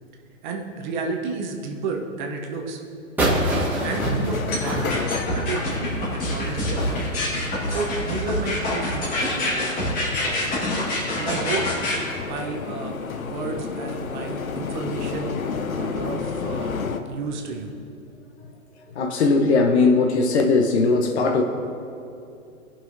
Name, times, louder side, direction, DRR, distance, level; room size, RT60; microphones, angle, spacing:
voice 1, 0.4-2.8 3.8-7.0 7.7-9.7 10.2-10.5 11.2-11.6 12.2-13.0 13.2-16.7 17.1-17.7, right 4 dB, 35° right, 2 dB, 0.8 m, -32 dB
sound 1, 3.2-5.9, right 1 dB, 5° right, 1.2 m, -25 dB
sound 2, 3.6-17.0, left 5 dB, 90° left, 0.6 m, -32 dB
sound 3, 4.5-12.0, left 1 dB, 20° left, 1.5 m, -26 dB
voice 2, 19.0-21.4, left 3 dB, 50° left, 5 dB, 0.8 m, -19 dB
16.5 x 5.6 x 2.6 m, 2.5 s
figure-of-eight pair, 125°, 41 cm